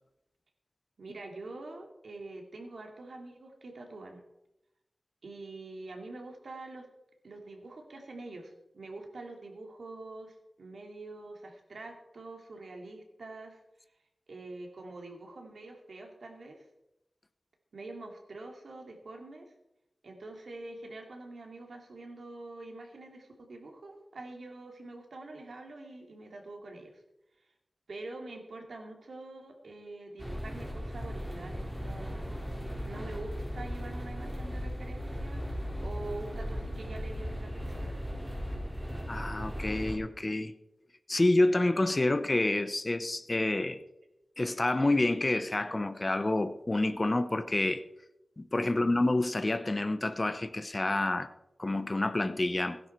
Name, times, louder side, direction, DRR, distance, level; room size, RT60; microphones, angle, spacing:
voice 1, 1.0-4.2 5.2-6.9 7.2-13.6 14.3-16.6 17.7-19.5 20.0-27.0 27.9-32.3 32.9-38.0 48.7-49.0, right 2 dB, 80° right, 2.6 m, -45 dB
sound 1, 30.2-40.0, equal, 10° right, 3.7 m, -37 dB
voice 2, 39.1-40.5 41.1-43.8 44.4-47.8 48.4-51.3 51.6-52.8, left 2 dB, 30° left, 0.8 m, -28 dB
16.5 x 10.5 x 4.6 m
wide cardioid pair, 105°, 0 cm